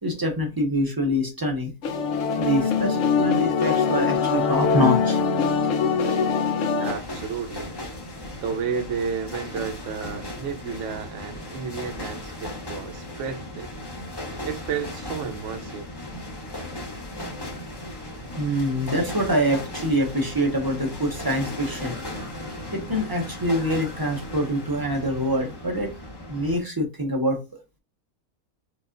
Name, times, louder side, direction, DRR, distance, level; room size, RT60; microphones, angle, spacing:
voice 1, 0.0-1.7 2.4-5.2 18.4-21.9 22.7-25.9 26.3-27.4, equal, 35° right, 0.3 m, -25 dB
sound 1, 1.8-6.9, left 6 dB, 65° left, 0.9 m, -22 dB
sound 2, 6.8-26.6, left 1 dB, 25° left, 0.6 m, -36 dB
voice 2, 6.8-7.7 8.4-13.7 14.4-15.9, right 6 dB, 65° right, 0.9 m, -32 dB
4.6 x 2.3 x 2.5 m
omnidirectional pair, 1.6 m